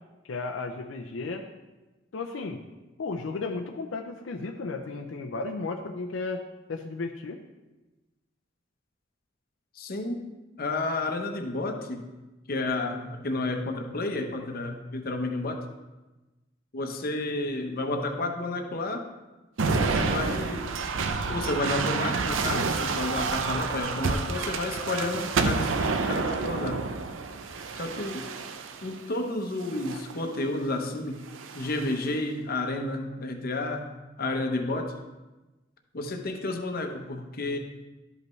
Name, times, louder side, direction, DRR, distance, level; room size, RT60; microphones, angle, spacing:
voice 1, 0.2-1.4 2.1-2.6 3.0-6.4 6.7-7.4, left 3 dB, 80° left, 3 dB, 0.5 m, -34 dB
voice 2, 9.8-10.2 10.6-12.0 12.5-15.6 16.7-19.1 19.7-20.7 21.3-26.8 27.7-28.3 28.8-31.2 31.5-35.0 35.9-37.6, left 2 dB, 50° left, 4 dB, 0.8 m, -31 dB
sound 1, 19.6-29.0 29.6-30.2 31.3-32.0, right 4 dB, 90° right, 0.5 m, -29 dB
12.0 x 5.3 x 3.1 m, 1.1 s
head